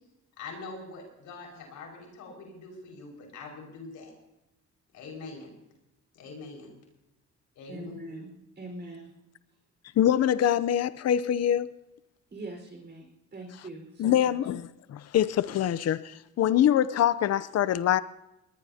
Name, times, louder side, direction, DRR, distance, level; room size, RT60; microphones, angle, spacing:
voice 1, 0.4-4.1 4.9-5.5 6.1-6.7 7.6-8.2, left 3 dB, 80° left, 0 dB, 5.4 m, -43 dB
voice 2, 7.7-8.3 8.6-9.1 12.3-14.4, right 2 dB, 35° right, 2 dB, 4.7 m, -42 dB
voice 3, 10.0-11.7 14.0-18.0, left 10 dB, 55° left, 16 dB, 0.7 m, -24 dB
21.5 x 19.5 x 2.8 m, 0.91 s
cardioid pair, 90°, 30 cm